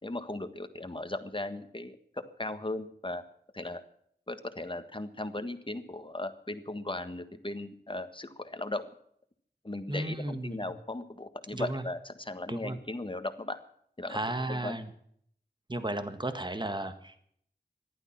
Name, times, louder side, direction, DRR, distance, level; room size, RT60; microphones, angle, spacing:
voice 1, 0.0-3.2 3.5-3.8 4.3-8.9 9.6-13.6 14.0-14.2 14.5-14.8, left 2 dB, 30° left, 10 dB, 1.6 m, -37 dB
voice 2, 9.9-10.7 11.5-11.8 12.5-12.8 14.1-14.9 15.7-17.2, right 1 dB, 25° right, 10 dB, 1.6 m, -34 dB
15.0 x 12.0 x 7.3 m, 0.65 s
wide cardioid pair, 65°, 17 cm